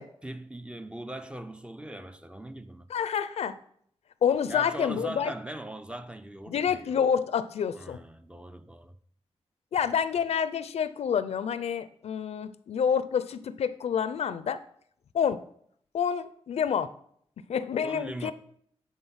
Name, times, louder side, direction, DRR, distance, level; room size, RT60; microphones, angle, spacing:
voice 1, 0.2-2.9 4.5-7.1 7.7-9.0 17.8-18.3, right 1 dB, 10° right, 0.4 m, -40 dB
voice 2, 2.9-3.6 4.2-5.3 6.5-8.0 9.7-14.6 15.1-15.4 15.9-16.9 17.5-18.3, left 7 dB, 75° left, 0.5 m, -28 dB
10.5 x 3.8 x 5.6 m
wide cardioid pair, 105°, 11 cm